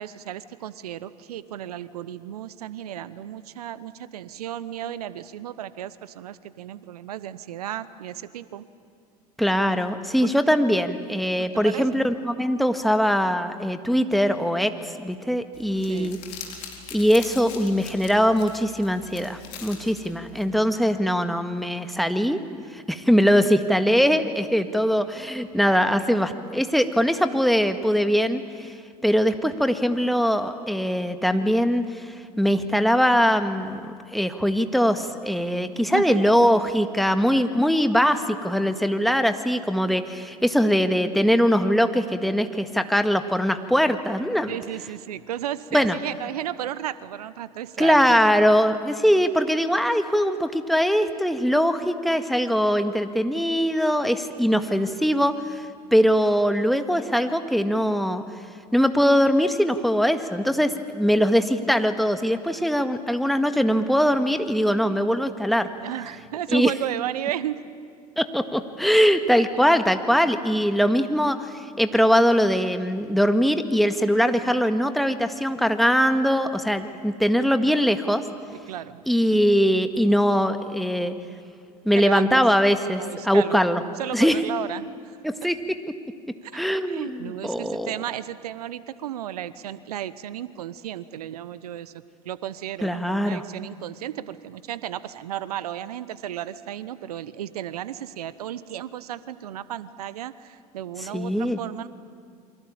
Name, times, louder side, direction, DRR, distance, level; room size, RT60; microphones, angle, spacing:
voice 1, 0.0-8.7 10.2-10.3 11.4-12.0 15.9-16.2 35.9-36.2 44.5-48.2 65.8-67.6 78.5-79.4 82.0-82.4 83.0-83.6 84.0-85.2 86.4-101.9, right 11 dB, 75° right, 16 dB, 1.0 m, -34 dB
voice 2, 9.4-16.2 16.9-22.4 22.7-28.7 29.0-32.1 32.4-44.6 45.7-46.0 47.8-58.2 58.7-65.7 66.5-66.7 68.2-78.2 79.1-81.1 81.9-83.8 84.1-84.4 85.2-85.6 86.5-87.9 92.8-93.4 101.1-101.6, equal, ahead, 8 dB, 1.9 m, -21 dB
Crumpling crinkling, 15.5-20.6, left 8 dB, 60° left, 4.2 m, -42 dB
28.0 x 23.5 x 8.9 m, 2.1 s
hypercardioid pair, 70°, 19 cm